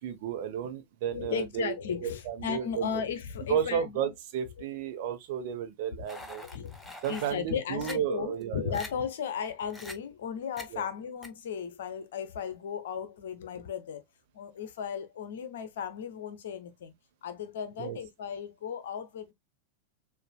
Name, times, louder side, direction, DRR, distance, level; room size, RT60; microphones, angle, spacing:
voice 1, 0.0-1.7 2.0-2.9 3.5-6.4 7.0-8.8 10.7-10.8 17.8-18.0, right 9 dB, 50° right, 0.9 m, -32 dB
voice 2, 1.1-4.1 6.4-14.0 14.3-16.9 17.2-19.3, left 7 dB, 60° left, 0.8 m, -36 dB
sound 1, 6.1-7.3 7.8-7.9 8.4-8.5 8.7-8.9 9.7-9.9 10.6-10.7 11.2-11.3, left 1 dB, 5° left, 0.8 m, -43 dB
6.6 x 2.6 x 2.2 m
figure-of-eight pair, 90°, 0 cm